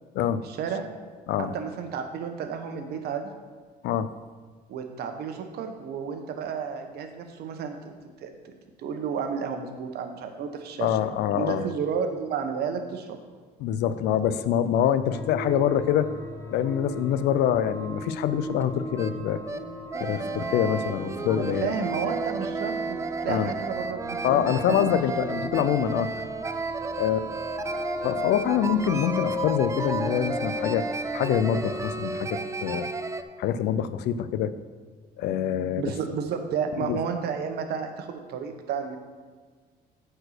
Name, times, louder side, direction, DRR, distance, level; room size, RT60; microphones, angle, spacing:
voice 1, 0.4-0.9 1.4-3.3 4.7-7.9 8.2-8.5 8.8-10.9 11.3-13.2 21.3-25.2 35.8-39.0, right 6 dB, 70° right, 6 dB, 1.1 m, -32 dB
voice 2, 10.8-11.7 13.6-16.1 16.5-19.4 20.0-21.7 23.3-23.5 24.2-26.1 26.9-27.3 28.0-30.8 31.1-32.9 33.4-34.5 35.2-35.9 36.8-37.0, left 10 dB, 80° left, 13 dB, 0.5 m, -25 dB
sound 1, 15.1-32.1, left 1 dB, 20° left, 0.9 m, -37 dB
sound 2, 18.6-18.7 19.0-19.1 19.5-19.6 19.9-33.2, right 4 dB, 20° right, 0.5 m, -33 dB
8.8 x 4.5 x 6.6 m, 1.5 s
cardioid pair, 110°, 17 cm